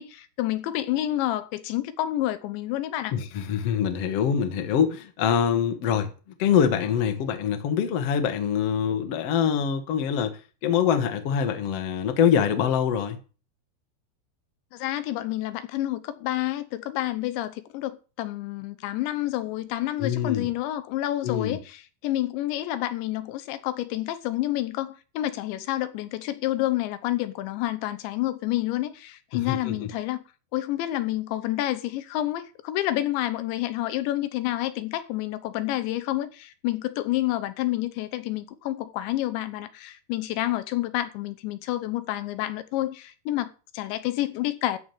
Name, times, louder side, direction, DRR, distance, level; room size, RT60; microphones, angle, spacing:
voice 1, 0.0-3.1 14.7-30.2 30.5-44.8, left 15 dB, 80° left, 3.2 m, -29 dB
voice 2, 3.1-6.1 6.4-13.2 20.0-20.5 21.2-21.6 29.3-29.9, left 8 dB, 60° left, 1.6 m, -24 dB
14.0 x 4.9 x 9.1 m
omnidirectional pair, 5.2 m